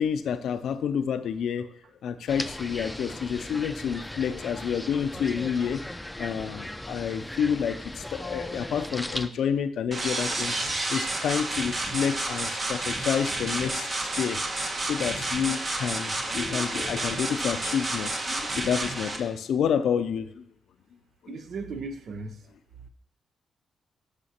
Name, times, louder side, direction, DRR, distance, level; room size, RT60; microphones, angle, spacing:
voice 1, 0.0-1.7 2.0-5.8 6.2-14.4 14.8-20.4 21.2-21.4, left 7 dB, 75° left, 11 dB, 0.5 m, -29 dB
sound 1, 2.3-9.3, left 1 dB, 10° left, 0.5 m, -37 dB
sound 2, 9.9-19.2, right 2 dB, 45° right, 1.4 m, -30 dB
voice 2, 21.3-22.4, right 3 dB, 65° right, 9 dB, 0.7 m, -36 dB
12.5 x 5.0 x 2.9 m, 0.71 s
hypercardioid pair, 40°, 0 cm